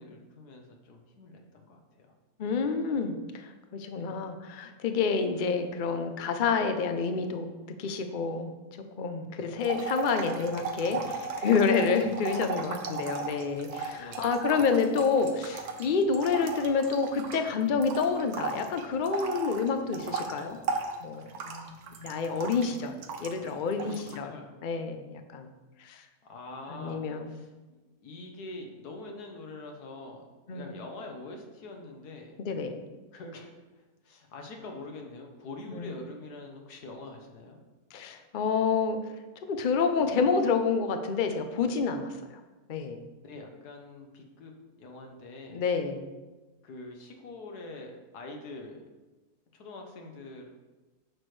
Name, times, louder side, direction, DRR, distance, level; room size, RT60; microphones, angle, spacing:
voice 1, 0.0-2.1 3.9-4.1 9.4-9.6 10.9-11.2 13.0-13.2 13.8-14.3 22.4-23.0 23.7-24.5 26.2-32.4 33.1-37.6 43.2-44.5 44.8-45.6 46.6-48.8 49.5-50.5, left 2 dB, 80° left, 2 dB, 1.5 m, -45 dB
voice 2, 2.4-8.5 9.0-11.0 11.4-20.6 21.0-24.3 24.6-25.5 25.8-26.0 26.7-27.3 30.5-30.7 32.4-32.8 35.8-35.9 37.9-39.0 39.5-42.1 42.7-43.0 45.5-46.0, left 5 dB, 55° left, 7 dB, 0.5 m, -28 dB
sound 1, 9.6-17.5 17.8-23.5 23.8-24.2, right 4 dB, 75° right, 1.3 m, -36 dB
9.5 x 6.1 x 3.2 m, 1.2 s
omnidirectional pair, 1.7 m